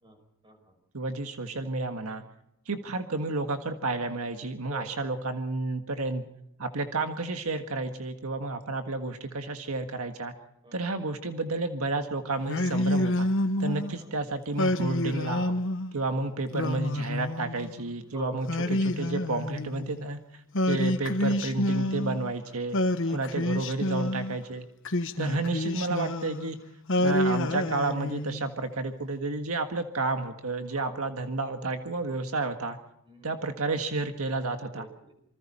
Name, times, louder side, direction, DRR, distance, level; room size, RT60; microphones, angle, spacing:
voice 1, 0.0-0.8 2.0-2.3 4.6-5.1 8.5-8.7 10.6-10.9 13.8-14.1 16.1-16.4 18.0-18.9 23.0-23.6 25.2-25.5 30.7-31.3 33.1-33.4 34.7-35.1, right 1 dB, 25° right, 6 dB, 5.3 m, -48 dB
voice 2, 0.9-2.2 2.7-6.2 6.6-10.3 10.7-13.3 13.6-15.6 15.9-20.2 20.6-22.8 23.1-24.7 25.2-26.6 27.0-32.8 33.2-34.8, right 3 dB, 80° right, 6 dB, 1.7 m, -31 dB
Singing, 12.5-13.9 14.6-15.9 16.5-17.8 18.5-20.0 20.5-22.3 22.7-24.4 24.8-26.5 26.9-28.5, left 1 dB, 60° left, 1.3 m, -28 dB
27.5 x 25.0 x 4.3 m, 0.78 s
head